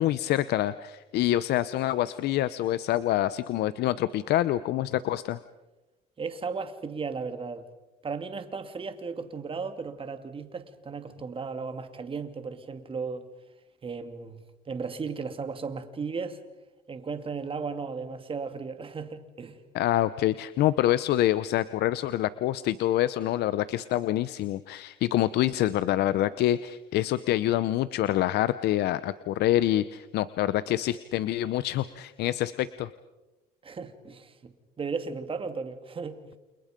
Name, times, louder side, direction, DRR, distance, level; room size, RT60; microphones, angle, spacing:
voice 1, 0.0-5.4 19.7-32.9, left 13 dB, 75° left, 0.9 m, -26 dB
voice 2, 6.2-7.6 8.0-13.2 13.8-14.4 14.7-16.4 16.9-19.6 33.6-36.2, right 5 dB, 30° right, 2.8 m, -35 dB
29.5 x 29.0 x 5.3 m
cardioid pair, 110°, 17 cm